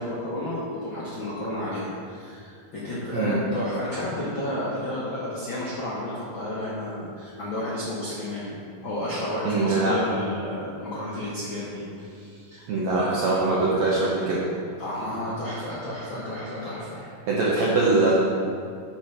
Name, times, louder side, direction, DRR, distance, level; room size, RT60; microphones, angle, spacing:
voice 1, 0.0-8.6 8.8-13.5 14.8-17.0, left 1 dB, 85° left, -7 dB, 1.0 m, -32 dB
voice 2, 9.4-10.0 12.7-14.4 17.3-18.2, right 3 dB, 80° right, -5 dB, 1.5 m, -22 dB
8.3 x 5.9 x 5.8 m, 2.4 s
omnidirectional pair, 4.6 m